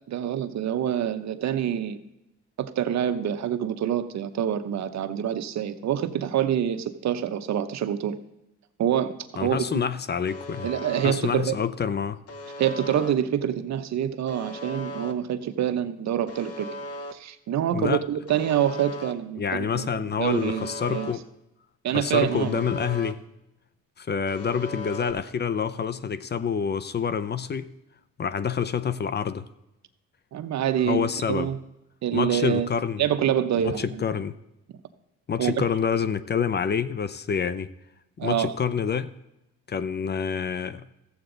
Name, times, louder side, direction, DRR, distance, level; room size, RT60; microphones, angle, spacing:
voice 1, 0.1-2.0 2.6-8.2 8.8-9.6 10.6-11.6 12.6-16.7 17.1-21.1 21.8-22.6 30.3-31.6 32.0-32.7 33.0-34.0 35.4-35.5 38.2-38.5, right 10 dB, 65° right, 0.9 m, -26 dB
voice 2, 9.4-10.7 11.0-12.2 17.7-18.0 19.4-21.3 21.9-23.2 24.0-27.7 28.2-29.5 30.8-31.5 32.1-33.0 33.6-34.4 35.3-37.7 38.2-39.1 39.7-40.8, left 7 dB, 35° left, 0.5 m, -27 dB
Alarm, 10.3-11.1 12.3-13.1 14.3-15.1 16.3-17.1 18.3-19.1 20.3-21.1 22.3-23.1 24.3-25.1, left 1 dB, 50° left, 1.0 m, -37 dB
14.0 x 8.0 x 3.9 m
cardioid pair, 90°, 30 cm